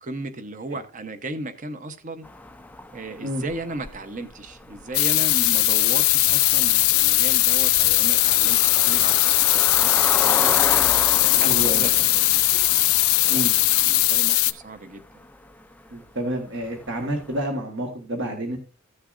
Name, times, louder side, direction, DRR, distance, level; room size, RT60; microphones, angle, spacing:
voice 1, 0.0-2.3 2.9-10.5 11.1-12.5 13.2-15.0, right 2 dB, 40° right, 10 dB, 0.9 m, -35 dB
sound 1, 2.2-17.5, left 2 dB, 10° left, 0.3 m, -35 dB
sound 2, 4.9-14.5, left 18 dB, 80° left, 0.5 m, -19 dB
voice 2, 11.4-11.8 13.3-13.5 15.9-18.6, right 1 dB, 60° right, 2 dB, 1.5 m, -29 dB
14.5 x 6.6 x 2.5 m, 0.33 s
head